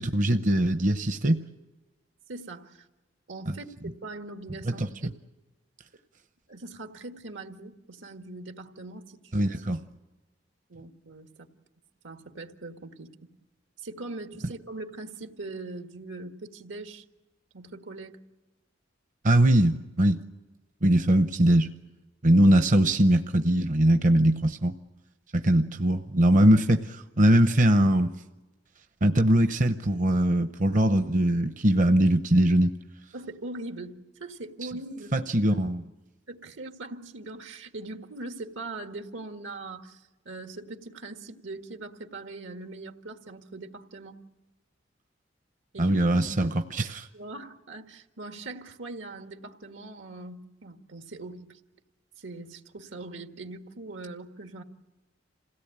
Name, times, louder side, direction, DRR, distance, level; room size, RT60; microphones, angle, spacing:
voice 1, 0.0-1.4 4.8-4.9 9.3-9.8 19.2-20.2 20.8-21.7 22.2-24.7 25.3-28.1 29.0-32.7 35.1-35.8 45.8-47.1, right 1 dB, 45° right, 8 dB, 0.7 m, -21 dB
voice 2, 2.3-2.9 3.3-4.9 6.5-9.5 10.7-11.5 12.0-13.1 13.8-17.1 17.5-18.2 33.1-35.1 36.3-44.2 45.7-46.2 47.1-51.6 52.2-54.6, right 2 dB, 85° right, 6 dB, 1.7 m, -41 dB
27.5 x 17.5 x 8.8 m, 1.1 s
head